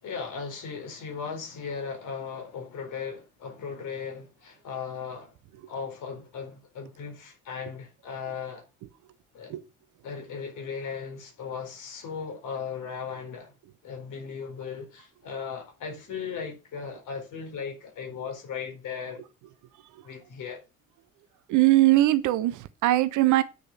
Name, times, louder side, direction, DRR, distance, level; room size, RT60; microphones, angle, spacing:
voice 1, 0.0-5.3 5.7-8.6 9.3-9.6 10.0-13.5 13.8-19.2 20.0-20.6, left 6 dB, 45° left, 4.3 m, -37 dB
voice 2, 21.5-23.4, right 16 dB, 45° right, 0.9 m, -21 dB
9.5 x 6.6 x 6.1 m
figure-of-eight pair, 55°, 41 cm